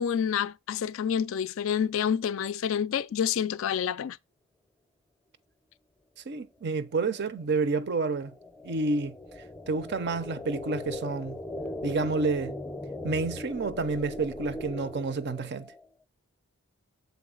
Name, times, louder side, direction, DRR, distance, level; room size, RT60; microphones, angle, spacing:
voice 1, 0.0-4.2, left 8 dB, 60° left, 0.3 m, -28 dB
voice 2, 6.3-8.3 8.6-9.2 9.7-11.4 11.8-12.5 13.0-15.7, right 3 dB, 50° right, 0.5 m, -29 dB
sound 1, 7.1-15.8, left 2 dB, 5° left, 0.6 m, -39 dB
7.0 x 3.9 x 3.8 m
head